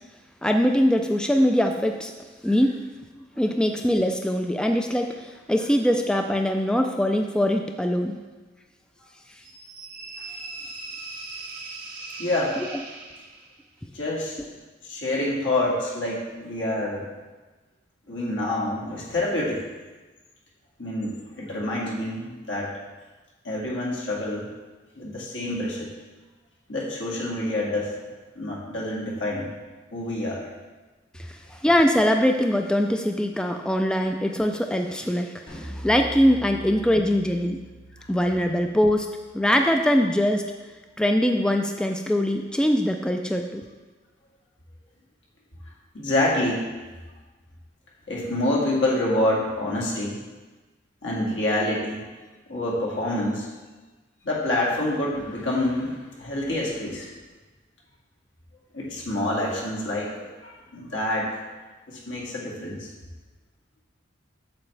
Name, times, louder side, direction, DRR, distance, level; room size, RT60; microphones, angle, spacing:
voice 1, 0.4-2.1 2.4-2.8 3.4-8.2 12.6-12.7 31.1-31.4 31.6-37.6 38.1-39.1 39.3-40.5 41.0-43.6, equal, 5° left, 4 dB, 0.3 m, -22 dB
sound 1, 9.4-13.6, right 3 dB, 50° right, 1.4 m, -39 dB
voice 2, 12.2-12.6 13.9-14.5 14.9-17.1 18.1-19.6 20.8-22.7 23.4-24.4 25.0-25.9 26.7-27.9 28.4-29.5 29.9-30.4 45.9-46.6 48.1-50.2 51.0-52.1 52.5-53.5 54.2-57.1 58.7-60.1 60.4-61.4 61.9-62.9, left 1 dB, 75° left, -4 dB, 2.0 m, -27 dB
sound 2, 35.5-40.9, equal, 35° left, 2.2 m, -43 dB
8.4 x 6.9 x 3.3 m, 1.3 s
head